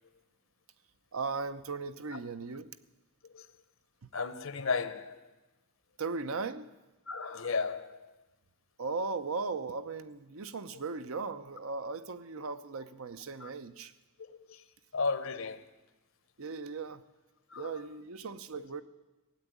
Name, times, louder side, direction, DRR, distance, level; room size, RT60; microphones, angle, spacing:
voice 1, 1.1-2.7 6.0-6.7 8.8-13.9 16.4-17.0 17.6-18.8, right 4 dB, 80° right, 0.8 m, -37 dB
voice 2, 4.1-5.2 7.1-8.1 13.4-13.5 14.2-14.6 14.9-15.6 17.5-17.7, left 4 dB, 70° left, 0.9 m, -34 dB
17.0 x 8.1 x 10.0 m
head